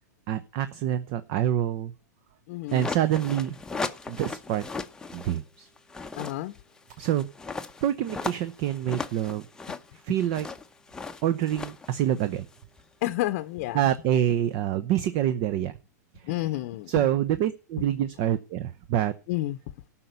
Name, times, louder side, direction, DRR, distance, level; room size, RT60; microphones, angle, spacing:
voice 1, 0.3-1.9 2.7-3.6 4.1-4.6 5.1-5.7 7.0-7.3 7.8-9.5 10.0-10.5 11.2-12.5 13.7-15.7 16.9-19.1, right 11 dB, 45° right, 0.8 m, -26 dB
voice 2, 2.5-2.9 6.1-6.5 13.0-13.8 16.2-17.0 19.3-19.6, left 16 dB, 50° left, 0.8 m, -30 dB
sound 1, 2.7-5.4 5.8-12.8, left 3 dB, 5° left, 0.8 m, -37 dB
13.5 x 5.8 x 8.1 m
hypercardioid pair, 125°, 9 cm